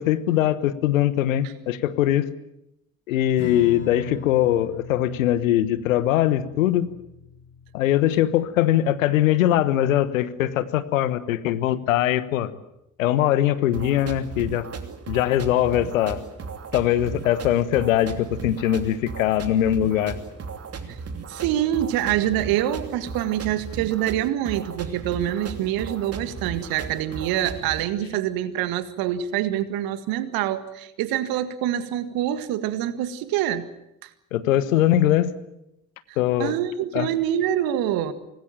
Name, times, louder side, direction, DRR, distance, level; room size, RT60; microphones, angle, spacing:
voice 1, 0.0-2.3 3.1-6.9 7.7-12.5 13.0-14.7 15.1-16.2 16.7-20.2 34.3-35.3 36.2-36.6 36.9-37.1, left 12 dB, 70° left, 15 dB, 1.3 m, -21 dB
Strum, 3.4-10.2, left 3 dB, 30° left, 6.6 m, -41 dB
sound 1, 13.7-27.8, right 5 dB, 35° right, 2.8 m, -36 dB
voice 2, 21.3-33.7 34.0-34.1 36.1-38.1, right 11 dB, 60° right, 13 dB, 1.9 m, -25 dB
25.0 x 19.5 x 8.9 m, 0.85 s
figure-of-eight pair, 50°, 41 cm